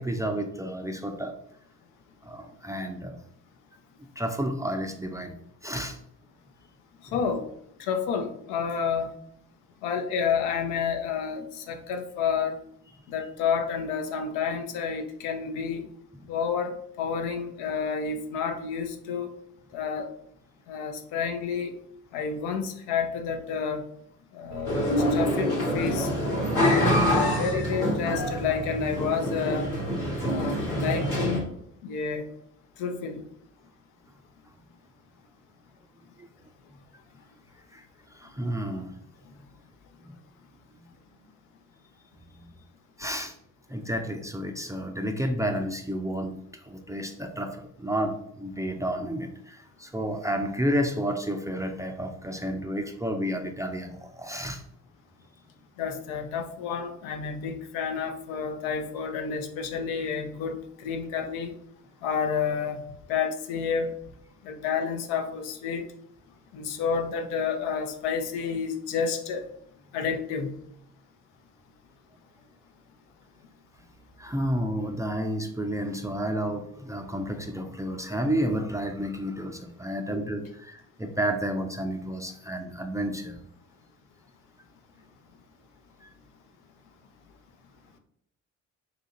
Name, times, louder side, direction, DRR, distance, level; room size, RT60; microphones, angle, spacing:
voice 1, 0.0-1.4 2.2-3.2 4.2-6.0 7.1-7.2 16.2-16.3 36.2-36.3 37.7-37.8 38.1-39.0 39.4-39.5 40.1-40.2 43.0-43.4 43.7-46.4 46.7-54.6 74.2-83.4 86.0-86.1, equal, 10° right, 4 dB, 0.4 m, -31 dB
voice 2, 7.1-7.4 7.9-9.1 9.8-12.5 13.1-15.9 16.3-16.7 17.0-19.3 19.7-20.1 20.7-21.7 22.1-23.8 24.3-24.7 25.1-26.1 26.9-29.7 30.2-31.5 31.8-32.3 32.8-33.2 55.8-61.5 62.0-62.8 63.1-63.9 64.4-65.8 66.5-69.5 69.9-70.6, left 6 dB, 75° left, 5 dB, 0.6 m, -30 dB
sound 1, 24.5-30.3, right 7 dB, 55° right, 0.6 m, -39 dB
sound 2, 24.7-31.4, left 1 dB, 90° left, 1.3 m, -26 dB
2.7 x 2.4 x 4.0 m, 0.71 s
hypercardioid pair, 45°, 40 cm